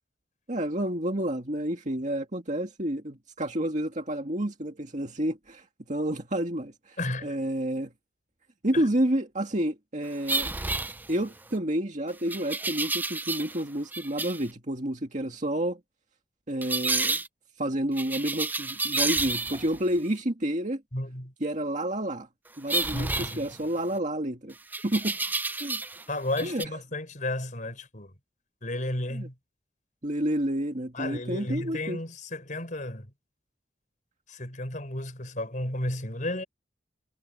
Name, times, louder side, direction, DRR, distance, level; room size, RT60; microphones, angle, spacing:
voice 1, 0.5-7.9 8.6-10.6 11.1-15.8 16.5-17.2 17.6-20.8 21.4-22.3 22.6-24.5 24.8-25.2 25.6-25.8 26.4-26.6 29.1-29.3 30.0-32.0, right 1 dB, 45° right, 2.0 m, -30 dB
voice 2, 7.0-7.4 8.7-8.8 20.9-21.3 22.9-23.5 26.1-28.1 28.6-29.3 30.9-33.1 34.3-36.5, left 1 dB, 45° left, 4.9 m, -33 dB
sound 1, 10.3-11.5 12.3-13.6 13.9-14.5 16.6-17.3 18.0-19.8 22.7-24.0 24.7-26.0 26.3-26.6, right 3 dB, 10° right, 0.4 m, -30 dB
head